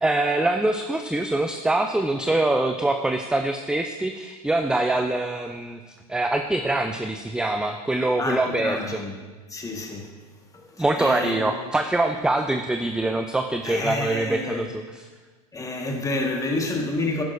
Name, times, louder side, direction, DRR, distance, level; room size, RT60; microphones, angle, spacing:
voice 1, 0.0-5.8 6.1-9.0 10.8-15.1, right 2 dB, 5° right, 0.4 m, -24 dB
voice 2, 8.2-9.1 9.5-10.1 10.8-11.5 13.6-14.6 15.5-17.2, left 2 dB, 15° left, 1.6 m, -29 dB
11.0 x 10.5 x 2.6 m
hypercardioid pair, 95°, 20 cm